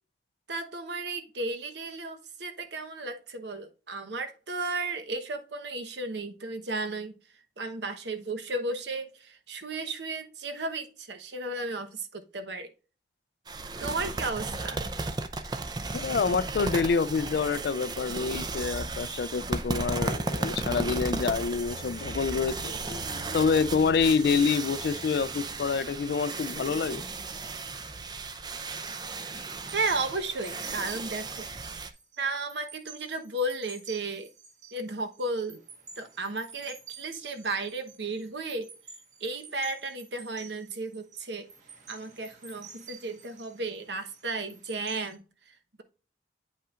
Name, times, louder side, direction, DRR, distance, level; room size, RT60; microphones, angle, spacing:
voice 1, 0.5-7.1 7.6-12.7 13.8-14.8 29.7-31.5 32.2-34.3 34.7-35.6 36.0-38.7 39.2-41.5 41.9-45.8, right 2 dB, 75° right, 1.0 m, -34 dB
sound 1, 13.5-31.9, right 3 dB, 25° right, 0.5 m, -35 dB
voice 2, 15.9-22.7 23.3-27.0, left 5 dB, 60° left, 0.3 m, -27 dB
sound 2, 21.6-26.9, right 1 dB, 80° left, 1.1 m, -46 dB
sound 3, 30.2-45.1, right 6 dB, 45° right, 1.3 m, -50 dB
8.9 x 5.5 x 2.4 m
head